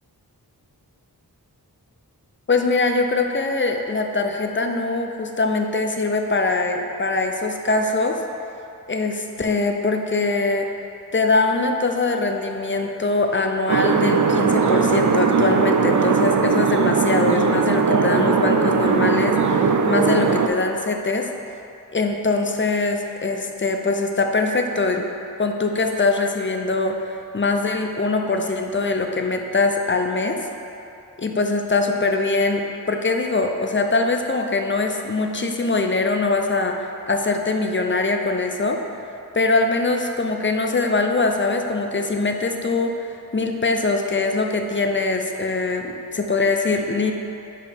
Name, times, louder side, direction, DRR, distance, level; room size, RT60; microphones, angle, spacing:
voice 1, 2.5-8.2 8.9-10.7 11.1-21.3 21.9-25.1 25.4-30.4 31.2-38.8 39.3-47.1, left 3 dB, 30° left, 4 dB, 0.6 m, -22 dB
sound 1, 13.7-20.5, right 5 dB, 50° right, 0.5 m, -19 dB
5.0 x 4.5 x 5.1 m, 2.7 s
cardioid pair, 40°, 39 cm